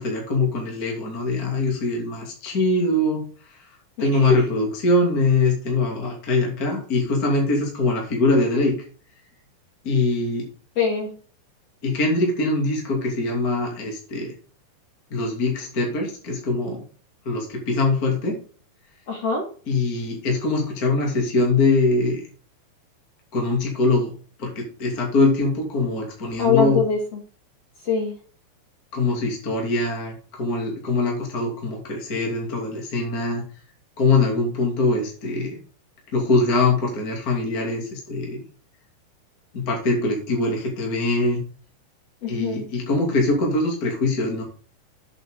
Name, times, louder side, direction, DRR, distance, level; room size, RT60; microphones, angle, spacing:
voice 1, 0.0-3.6 4.0-8.7 9.8-10.5 11.8-14.3 15.1-16.8 17.2-18.4 19.7-22.2 23.3-24.1 24.4-26.8 28.9-33.4 34.0-35.6 36.1-38.4 39.5-41.4 42.3-44.4, left 2 dB, 25° left, -1 dB, 2.2 m, -23 dB
voice 2, 10.8-11.1 19.1-19.4 26.4-27.0 27.9-28.2 42.2-42.6, left 6 dB, 45° left, 0 dB, 2.3 m, -22 dB
8.2 x 8.2 x 3.8 m, 0.41 s
omnidirectional pair, 5.3 m